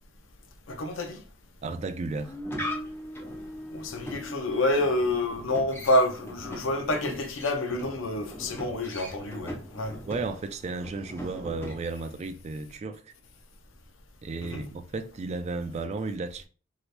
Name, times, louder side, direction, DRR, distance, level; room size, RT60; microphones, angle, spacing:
voice 1, 0.7-1.2 3.7-10.0 14.4-14.6, left 1 dB, 75° left, 0.6 m, -28 dB
voice 2, 1.6-2.3 10.1-13.1 14.2-16.5, right 3 dB, 35° right, 0.3 m, -34 dB
sound 1, 2.1-12.1, equal, 10° left, 0.9 m, -40 dB
3.2 x 2.9 x 2.5 m
head